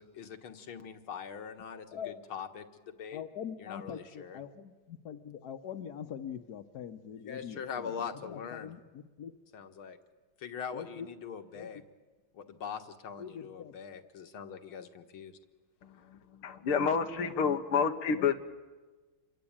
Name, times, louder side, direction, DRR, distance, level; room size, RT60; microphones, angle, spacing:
voice 1, 0.0-3.2 3.6-4.4 7.2-8.7 9.5-10.0 10.4-11.8 12.3-15.4, left 7 dB, 75° left, 7 dB, 2.4 m, -42 dB
voice 2, 3.1-7.9 8.6-8.8 9.2-9.3 10.7-11.1 11.6-11.7 13.2-14.0 18.1-18.3, left 8 dB, 55° left, 8 dB, 1.5 m, -43 dB
voice 3, 16.4-18.3, left 6 dB, 90° left, 6 dB, 2.3 m, -28 dB
28.5 x 23.5 x 8.9 m, 1.3 s
omnidirectional pair, 2.3 m